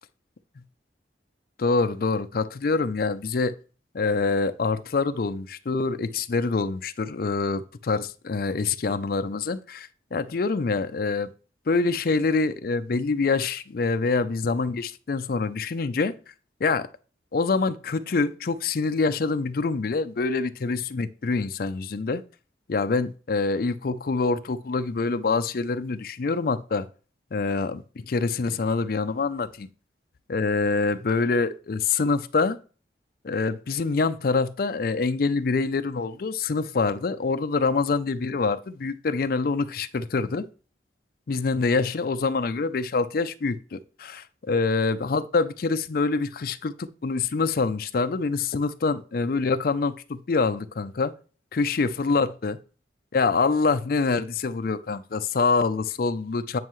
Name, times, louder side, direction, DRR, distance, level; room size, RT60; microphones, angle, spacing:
voice 1, 1.6-3.5 3.9-11.3 11.7-16.1 16.6-16.9 17.3-22.2 22.7-26.9 27.3-29.7 30.3-32.6 33.2-40.5 41.3-51.1 51.5-52.6 53.1-56.6, left 4 dB, 50° left, 0.4 m, -25 dB
9.4 x 5.5 x 3.1 m
head